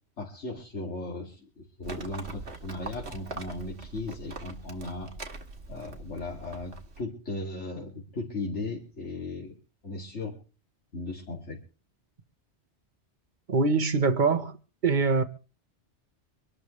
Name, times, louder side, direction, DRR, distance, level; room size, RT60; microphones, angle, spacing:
voice 1, 0.2-5.1 5.7-9.5 9.8-10.4 10.9-11.6, left 2 dB, 80° left, 3.2 m, -37 dB
Livestock farm animals working animals, 1.8-7.0, right 3 dB, 70° right, 2.1 m, -42 dB
voice 2, 13.5-14.6 14.8-15.2, right 4 dB, 45° right, 1.3 m, -23 dB
25.0 x 12.5 x 3.3 m
omnidirectional pair, 1.2 m